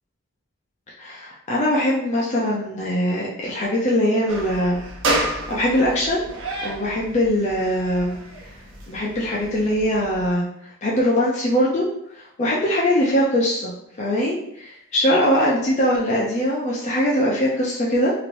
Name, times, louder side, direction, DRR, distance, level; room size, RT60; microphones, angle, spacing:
voice 1, 1.0-4.8 5.1-6.2 6.6-8.2 8.9-10.4 10.8-11.9 12.1-18.1, equal, 35° left, -4 dB, 0.5 m, -22 dB
sound 1, 4.3-10.3, right 1 dB, 65° right, 0.7 m, -30 dB
3.1 x 2.9 x 2.5 m, 0.75 s
head